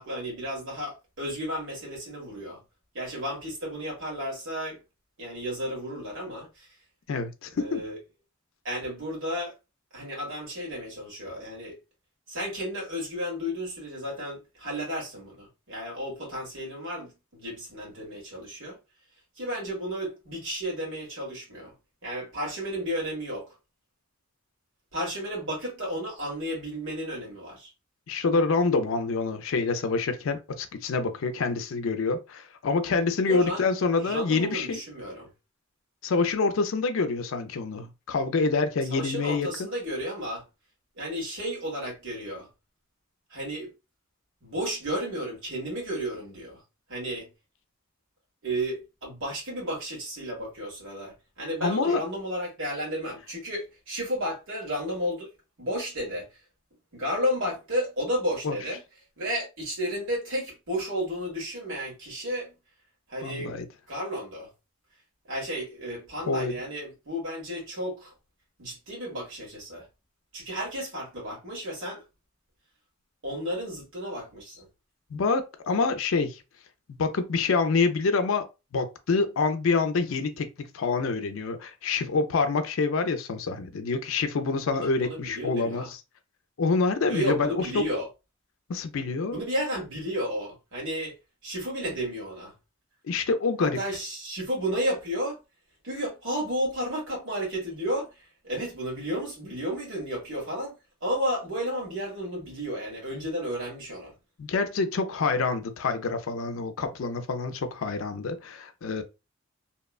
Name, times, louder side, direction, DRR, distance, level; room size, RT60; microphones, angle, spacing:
voice 1, 0.0-2.6 2.9-4.8 5.2-6.7 7.6-8.0 8.6-9.5 9.9-11.8 12.3-18.8 19.4-21.7 22.0-23.5 24.9-27.7 33.2-33.6 34.0-35.3 38.9-40.4 40.9-42.5 43.3-43.7 44.4-46.6 46.9-47.3 48.4-55.3 55.6-56.3 56.9-58.8 59.2-62.5 63.1-63.5 63.9-64.5 65.3-68.1 68.6-69.9 70.3-72.0 73.2-74.7 84.7-85.9 87.1-88.1 89.3-91.2 91.4-92.5 93.6-95.4 95.8-100.7 101.0-104.1, equal, 65° right, 1.4 m, -32 dB
voice 2, 7.1-7.8 28.1-34.8 36.0-39.5 51.6-52.0 58.4-58.6 63.2-63.6 66.3-66.6 75.1-76.4 76.9-78.5 78.7-86.0 86.6-87.8 88.7-89.4 93.1-93.8 104.4-109.0, left 4 dB, 70° left, 0.4 m, -26 dB
2.9 x 2.1 x 2.3 m
head